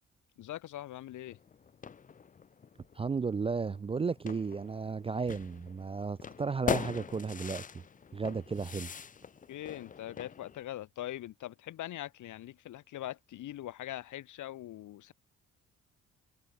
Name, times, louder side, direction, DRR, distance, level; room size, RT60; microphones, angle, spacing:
voice 1, 0.4-1.4 9.5-15.1, left 13 dB, 75° left, 2.1 m, -42 dB
sound 1, 1.3-10.6, left 6 dB, 25° left, 0.6 m, -42 dB
voice 2, 3.0-7.6 8.1-8.9, right 5 dB, 20° right, 0.3 m, -34 dB
cardioid pair, 90°, 30 cm